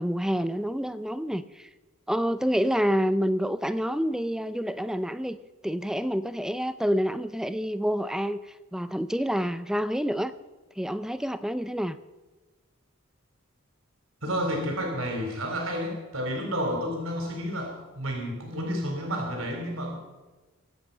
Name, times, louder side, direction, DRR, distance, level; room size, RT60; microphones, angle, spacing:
voice 1, 0.0-1.7 2.1-5.4 5.6-10.3 10.8-12.0, equal, 5° right, 12 dB, 0.5 m, -28 dB
voice 2, 14.2-20.0, equal, 85° right, 2 dB, 4.1 m, -30 dB
24.0 x 9.0 x 5.6 m, 1.2 s
head